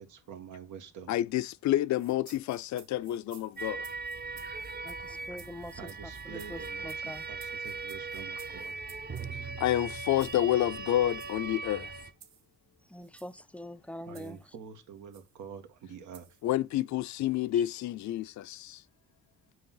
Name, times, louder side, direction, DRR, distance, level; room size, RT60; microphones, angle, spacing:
voice 1, 0.0-1.2 5.8-8.7 14.1-16.3, right 7 dB, 80° right, 1.4 m, -47 dB
voice 2, 1.1-3.9 9.6-11.9 16.4-18.8, left 13 dB, 70° left, 0.5 m, -29 dB
sound 1, 1.9-9.3 10.2-10.4 11.1-11.3 12.2-12.4 13.0-13.4 14.1-14.4 15.1-15.3 16.1-16.4, right 9 dB, 65° right, 1.0 m, -56 dB
sound 2, 3.6-12.1, right 4 dB, 30° right, 0.8 m, -39 dB
voice 3, 4.8-7.3 12.9-14.5, left 1 dB, 5° left, 0.4 m, -44 dB
7.9 x 3.1 x 5.5 m
cardioid pair, 90°, 30 cm